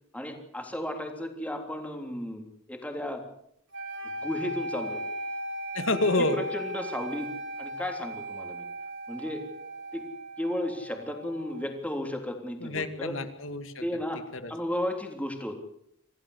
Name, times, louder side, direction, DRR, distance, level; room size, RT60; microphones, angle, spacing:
voice 1, 0.1-3.2 4.2-5.0 6.3-7.3 7.6-8.6 9.1-9.4 9.9-10.1 10.4-13.1 13.8-15.6, left 1 dB, 5° left, 4 dB, 3.4 m, -34 dB
sound 1, 3.7-11.8, right 1 dB, 65° right, 4.0 m, -38 dB
voice 2, 5.7-6.4 12.6-13.8 14.3-14.5, left 2 dB, 70° left, 10 dB, 2.3 m, -28 dB
26.0 x 16.0 x 8.2 m, 0.74 s
head